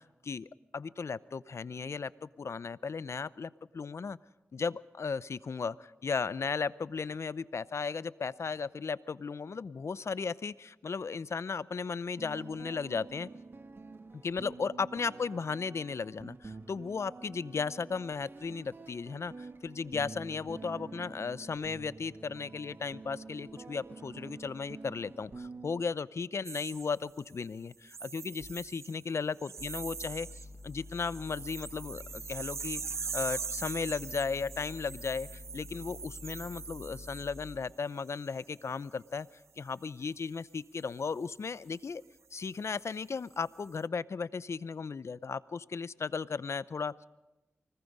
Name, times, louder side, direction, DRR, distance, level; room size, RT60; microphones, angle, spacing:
voice 1, 0.0-4.2 4.5-13.3 14.1-39.3 39.6-42.0 42.3-47.0, left 5 dB, 70° left, 18 dB, 0.6 m, -36 dB
sound 1, 12.2-25.8, right 3 dB, 50° right, 1.2 m, -48 dB
sound 2, 26.4-27.4 27.9-29.0 29.4-30.4 30.8-37.6 38.1-38.4, right 5 dB, 80° right, 0.7 m, -42 dB
sound 3, 28.4-28.5 29.6-37.6, left 2 dB, 40° left, 1.2 m, -48 dB
25.0 x 19.5 x 5.4 m, 1.0 s
cardioid pair, 45°, 5 cm